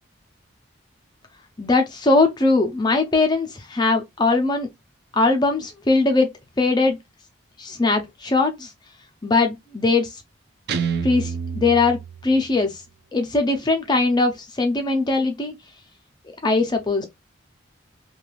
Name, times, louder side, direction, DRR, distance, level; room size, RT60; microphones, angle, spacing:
voice 1, 1.6-4.7 5.1-6.3 6.6-7.0 7.6-8.7 9.2-10.1 11.0-12.0 12.2-12.8 13.1-15.5 16.4-17.0, left 3 dB, 20° left, 0.4 m, -20 dB
Guitar, 10.7-12.7, right 6 dB, 50° right, 0.3 m, -28 dB
3.2 x 2.3 x 2.2 m
head